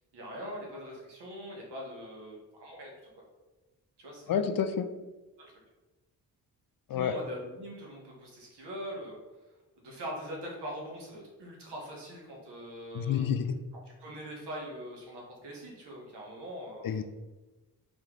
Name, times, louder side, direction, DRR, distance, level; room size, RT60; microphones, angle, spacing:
voice 1, 0.1-3.1 4.0-4.3 5.4-5.5 6.9-9.2 9.8-13.3 14.0-17.0, equal, 80° right, -2 dB, 1.4 m, -42 dB
voice 2, 4.3-4.9 6.9-7.1 12.9-13.6 16.8-17.0, left 7 dB, 55° left, 9 dB, 0.5 m, -29 dB
4.3 x 3.1 x 3.7 m, 1.1 s
cardioid pair, 60°, 41 cm